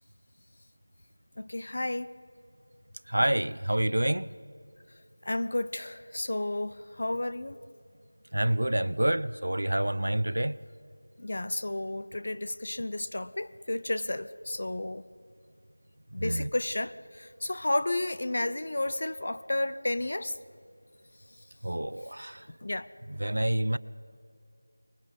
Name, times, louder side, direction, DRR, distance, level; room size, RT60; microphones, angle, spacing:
voice 1, 1.4-2.1 5.3-7.6 11.2-15.0 16.1-20.3 22.6-22.9, left 1 dB, 45° left, 0.5 m, -32 dB
voice 2, 3.1-4.3 8.3-10.6 16.2-16.5 21.6-22.4 23.1-23.8, right 1 dB, 75° right, 0.6 m, -27 dB
25.0 x 20.5 x 5.3 m
figure-of-eight pair, 175°, 0 cm